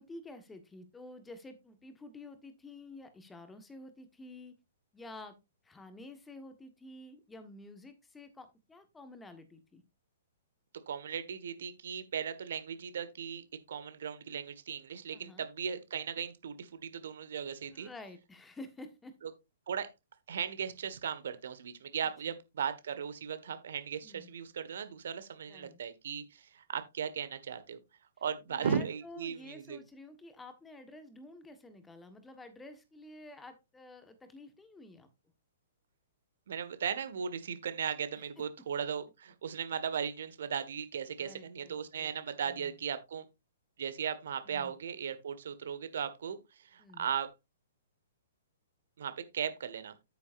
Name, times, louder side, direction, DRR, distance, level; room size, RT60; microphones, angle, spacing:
voice 1, 0.0-4.5 4.9-5.4 5.6-9.8 15.1-15.4 17.7-19.1 22.3-22.4 24.0-24.3 25.5-25.8 28.5-35.1 38.4-38.5 41.2-42.2 42.5-42.7 44.5-44.7 46.8-47.1, left 2 dB, 10° left, 10 dB, 1.4 m, -50 dB
voice 2, 10.9-17.9 19.2-19.3 19.7-19.9 20.3-27.8 28.2-29.8 36.5-43.3 43.8-47.3 49.0-50.0, right 7 dB, 60° right, 11 dB, 1.5 m, -37 dB
9.6 x 9.2 x 2.6 m, 0.23 s
figure-of-eight pair, 115°, 0 cm